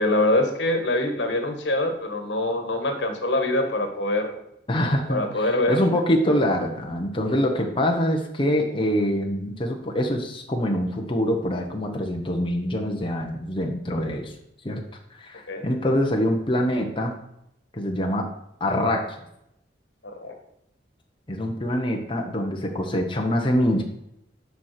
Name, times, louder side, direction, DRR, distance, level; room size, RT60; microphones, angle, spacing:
voice 1, 0.0-4.3 5.1-5.8 15.5-15.7 20.0-20.3, left 1 dB, 80° left, 5 dB, 1.5 m, -24 dB
voice 2, 4.7-14.3 14.6-14.8 15.1-17.1 17.7-18.3 18.6-19.2 21.3-23.8, equal, 30° left, 2 dB, 1.1 m, -24 dB
7.1 x 5.9 x 6.6 m, 0.80 s
head